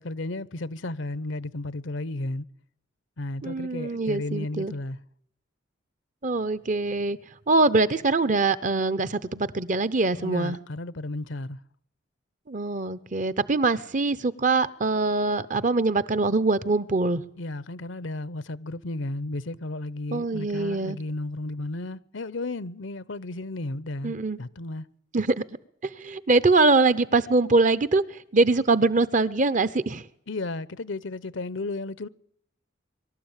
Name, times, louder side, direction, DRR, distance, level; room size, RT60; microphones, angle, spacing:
voice 1, 0.0-2.5 3.2-5.0 10.2-11.6 17.4-24.9 30.3-32.1, left 2 dB, 75° left, 0.8 m, -33 dB
voice 2, 3.4-4.7 6.2-7.2 7.5-10.6 12.5-17.2 20.1-21.0 24.0-24.4 25.1-25.4 25.8-30.1, right 3 dB, 40° right, 0.8 m, -23 dB
24.0 x 12.5 x 9.0 m
head